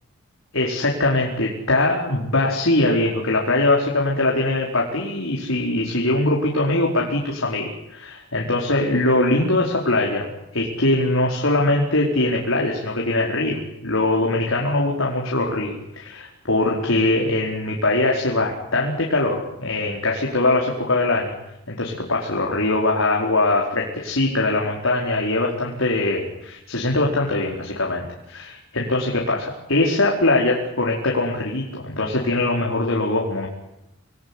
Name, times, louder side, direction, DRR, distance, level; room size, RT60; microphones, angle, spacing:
voice 1, 0.5-21.3 21.7-33.5, left 2 dB, 80° left, -1 dB, 4.9 m, -22 dB
28.0 x 20.5 x 9.9 m, 0.87 s
head